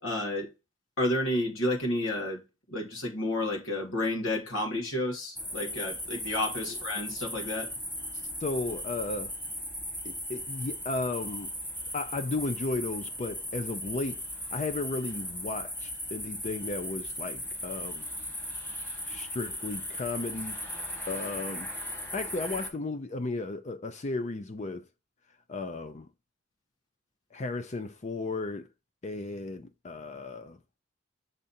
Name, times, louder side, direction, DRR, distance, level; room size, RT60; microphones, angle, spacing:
voice 1, 0.0-0.5 1.0-2.4 2.7-7.7, left 1 dB, 85° left, 2.2 m, -31 dB
sound 1, 5.3-22.7, equal, 10° left, 1.5 m, -37 dB
voice 2, 8.4-9.3 10.0-11.5 11.9-14.2 14.5-18.1 19.1-20.6 21.1-21.7 22.1-24.8 25.5-26.1 27.3-28.7 29.0-30.6, left 3 dB, 35° left, 0.5 m, -34 dB
6.7 x 3.7 x 4.2 m
head